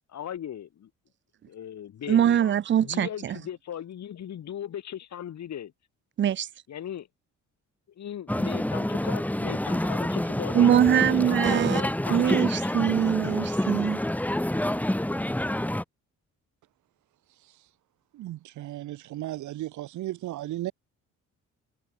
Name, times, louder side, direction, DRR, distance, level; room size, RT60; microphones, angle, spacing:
voice 1, 0.1-0.9 1.5-5.7 6.7-7.1 8.0-12.9, left 10 dB, 65° left, 6.4 m, -38 dB
voice 2, 2.1-3.4 6.2-6.5 10.5-11.8 12.1-14.0, right 10 dB, 40° right, 0.5 m, -23 dB
sound 1, 8.3-15.8, left 1 dB, 5° left, 2.3 m, -27 dB
voice 3, 18.1-20.7, right 15 dB, 75° right, 0.9 m, -35 dB
cardioid pair, 90°, 30 cm